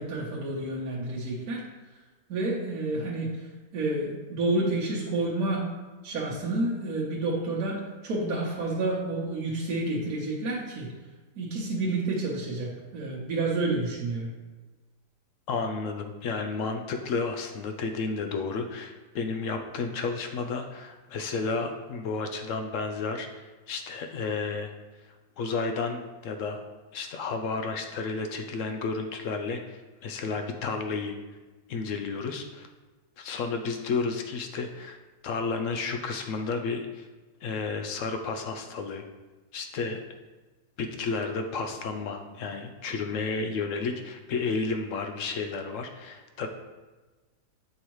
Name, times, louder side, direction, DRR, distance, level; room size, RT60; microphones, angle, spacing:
voice 1, 0.0-1.6 2.3-3.3 3.7-5.6 6.0-10.9 11.4-14.3, right 2 dB, 65° right, -5 dB, 1.3 m, -29 dB
voice 2, 15.5-24.7 25.4-26.6 26.9-31.1 31.7-32.7 33.2-35.0 35.2-37.1 37.4-39.0 39.5-40.0 40.8-46.5, left 4 dB, 70° left, 6 dB, 0.8 m, -32 dB
7.1 x 4.8 x 3.0 m, 1.2 s
omnidirectional pair, 1.7 m